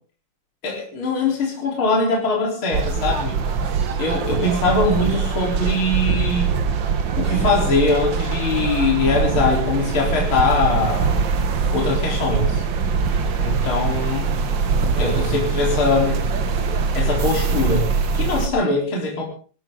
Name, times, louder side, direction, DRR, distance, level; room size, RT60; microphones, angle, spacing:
voice 1, 0.6-3.4 4.0-6.5 7.2-11.1 11.7-12.6 13.4-14.3 14.9-16.2 16.9-19.2, left 3 dB, 35° left, -1 dB, 4.6 m, -22 dB
sound 1, 2.7-18.5, right 5 dB, 70° right, 1.1 m, -23 dB
sound 2, 2.8-17.8, right 5 dB, 45° right, 1.8 m, -33 dB
24.0 x 14.0 x 3.8 m, 0.40 s
omnidirectional pair, 3.9 m